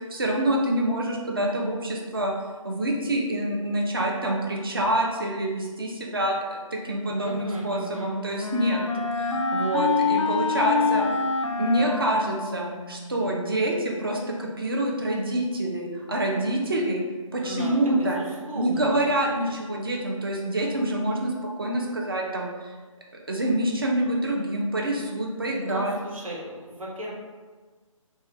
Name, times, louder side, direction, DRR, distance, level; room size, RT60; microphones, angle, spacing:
voice 1, 0.1-2.3 2.6-8.8 9.1-11.1 11.6-17.0 17.3-18.2 18.5-22.7 23.3-26.0, right 1 dB, 40° right, -1 dB, 0.6 m, -26 dB
voice 2, 7.2-8.2 17.4-19.0 25.7-27.1, right 1 dB, 80° right, -4 dB, 1.4 m, -36 dB
Wind instrument woodwind instrument, 7.5-13.3, left 4 dB, 60° left, 0.4 m, -27 dB
4.2 x 2.2 x 3.4 m, 1.4 s
hypercardioid pair, 180°, 18 cm